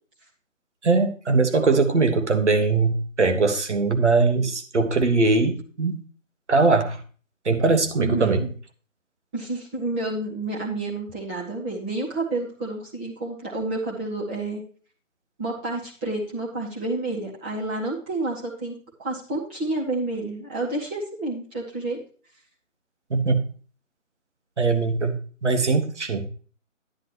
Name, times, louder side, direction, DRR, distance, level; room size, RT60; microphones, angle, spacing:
voice 1, 0.8-6.0 6.5-7.0 7.4-8.5 23.1-23.4 24.6-25.2 25.4-26.3, right 3 dB, 60° right, 7 dB, 1.5 m, -21 dB
voice 2, 8.0-8.5 9.3-14.6 15.4-22.0, right 2 dB, 10° right, -5 dB, 1.1 m, -29 dB
10.5 x 9.9 x 3.0 m, 0.40 s
figure-of-eight pair, 150°, 39 cm